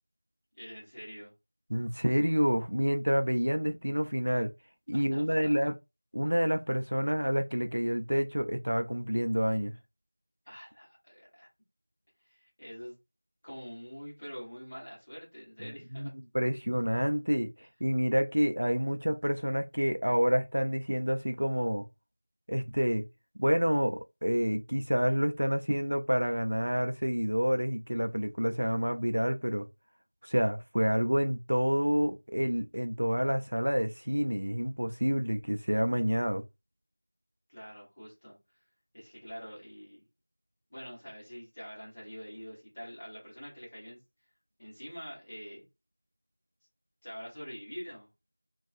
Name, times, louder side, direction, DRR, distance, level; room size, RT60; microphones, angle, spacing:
voice 1, 0.6-1.3 4.9-5.5 10.5-11.5 12.2-13.0 13.4-16.1 37.5-38.3 38.9-40.0 40.7-44.0 44.6-45.6 47.0-48.1, equal, 15° left, 1.0 m, -45 dB
voice 2, 1.7-4.5 4.9-5.7 6.1-9.7 15.9-17.5 17.8-21.9 22.5-23.0 23.4-29.7 30.2-36.4, equal, 75° right, 0.4 m, -28 dB
2.6 x 2.3 x 2.5 m
figure-of-eight pair, 180°, 0 cm